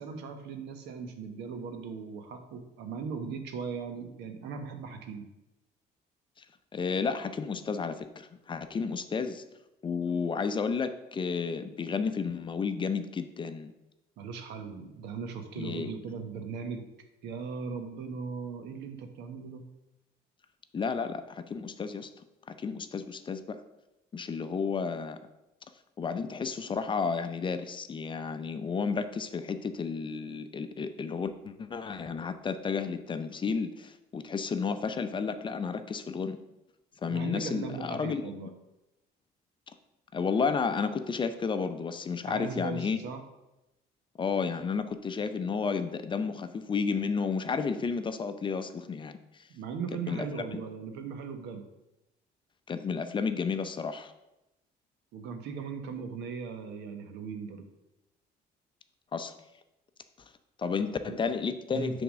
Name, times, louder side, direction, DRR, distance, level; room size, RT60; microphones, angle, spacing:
voice 1, 0.0-5.3 14.2-16.8 17.2-19.6 37.1-38.5 42.3-43.2 49.5-51.6 55.1-57.7 61.0-61.2 61.7-62.0, right 5 dB, 85° right, 6 dB, 1.0 m, -38 dB
voice 2, 6.7-9.4 9.8-13.7 15.6-15.9 20.7-22.1 22.5-23.6 24.1-25.2 26.0-36.4 37.0-38.2 40.1-43.0 44.2-49.5 50.1-50.3 50.5-50.6 52.7-54.1 59.1-59.4 60.6-62.0, left 5 dB, 30° left, 10 dB, 0.5 m, -32 dB
7.1 x 3.6 x 6.1 m, 0.93 s
cardioid pair, 110°, 17 cm